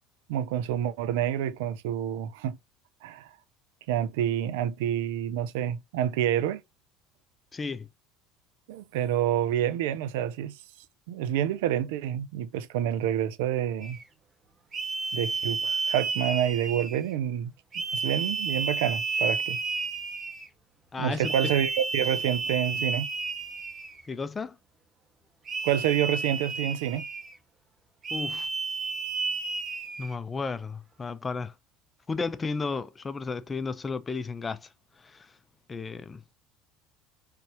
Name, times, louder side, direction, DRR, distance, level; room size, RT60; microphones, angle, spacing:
voice 1, 0.3-2.6 3.0-3.3 3.9-6.6 8.7-10.6 11.1-14.0 15.1-19.6 21.0-23.1 25.6-27.1, right 10 dB, 80° right, 0.5 m, -28 dB
voice 2, 7.5-7.9 20.9-21.3 24.1-24.6 28.1-28.5 30.0-31.5 32.1-34.7 35.0-35.3 35.7-36.2, left 4 dB, 25° left, 0.6 m, -33 dB
sound 1, 13.8-14.0 14.7-17.1 17.7-20.5 21.2-24.0 25.5-27.4 28.0-30.1, right 4 dB, 40° right, 1.5 m, -32 dB
4.2 x 3.3 x 2.9 m
hypercardioid pair, 80°, 0 cm